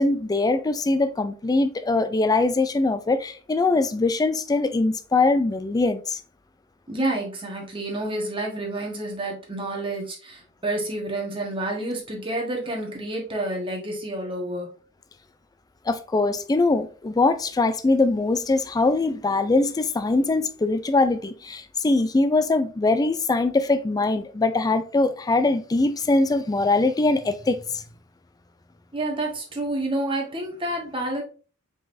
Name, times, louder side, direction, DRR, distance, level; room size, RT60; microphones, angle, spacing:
voice 1, 0.0-6.2 15.9-27.8, left 3 dB, 20° left, 0.3 m, -22 dB
voice 2, 6.9-14.7 28.9-31.2, right 1 dB, 25° right, 1.3 m, -29 dB
4.9 x 3.9 x 2.6 m
head